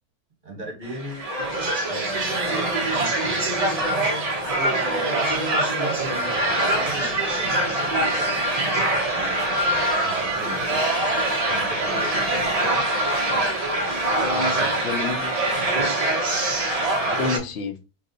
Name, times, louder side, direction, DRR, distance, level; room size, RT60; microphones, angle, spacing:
voice 1, 0.4-1.3 1.8-3.1 3.8-5.3 5.6-9.6 10.0-10.8 11.5-12.4 12.7-12.8, right 2 dB, 35° right, 1.1 m, -38 dB
sound 1, 0.9-17.4, right 1 dB, 75° right, 0.3 m, -23 dB
voice 2, 14.0-15.6 17.1-17.7, left 5 dB, 60° left, 0.8 m, -31 dB
2.8 x 2.1 x 3.8 m
omnidirectional pair, 1.6 m